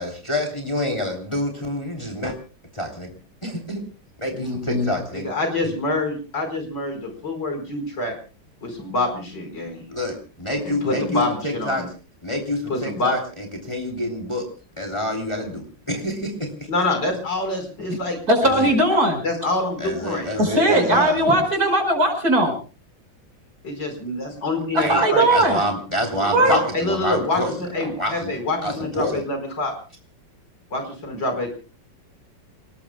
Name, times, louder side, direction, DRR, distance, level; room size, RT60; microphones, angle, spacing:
voice 1, 0.0-2.3 2.7-3.1 3.4-3.8 4.2-5.3 9.9-11.8 12.2-14.4 14.8-16.5 18.4-18.7 19.8-21.4 24.7-25.0 25.3-27.5 27.8-29.2, left 1 dB, 15° left, 1 dB, 3.2 m, -27 dB
voice 2, 4.4-4.9 17.9-18.0 18.3-19.2 20.4-22.5 24.9-25.6 26.2-26.6, right 1 dB, 50° right, 4 dB, 5.8 m, -19 dB
voice 3, 5.1-8.1 8.6-9.8 10.7-11.9 12.7-13.1 16.7-18.2 19.2-20.4 20.7-21.3 23.6-25.3 26.4-27.4 27.7-29.7 30.7-31.5, left 2 dB, 65° left, 4 dB, 5.4 m, -26 dB
29.0 x 20.0 x 2.3 m, 0.35 s
omnidirectional pair, 2.1 m